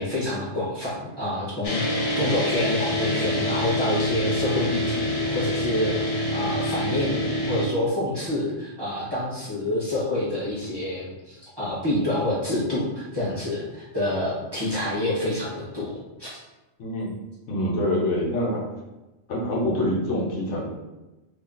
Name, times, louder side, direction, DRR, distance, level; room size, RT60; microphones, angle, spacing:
voice 1, 0.0-16.3, left 1 dB, 20° right, -9 dB, 0.9 m, -28 dB
sound 1, 1.6-7.7, left 1 dB, 45° left, 0.5 m, -26 dB
voice 2, 16.8-17.1 17.5-18.6 19.3-20.7, left 1 dB, 70° left, -3 dB, 1.1 m, -25 dB
2.8 x 2.7 x 3.7 m, 1.0 s
omnidirectional pair, 1.3 m